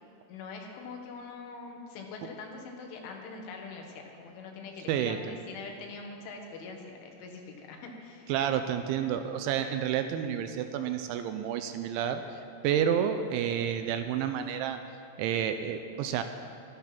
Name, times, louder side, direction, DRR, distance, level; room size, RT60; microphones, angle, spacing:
voice 1, 0.3-8.3, left 4 dB, 80° left, 2 dB, 3.9 m, -43 dB
voice 2, 4.9-5.4 8.3-14.8 15.2-16.2, right 9 dB, 85° right, 8 dB, 2.8 m, -30 dB
13.5 x 13.5 x 5.9 m, 2.5 s
omnidirectional pair, 5.6 m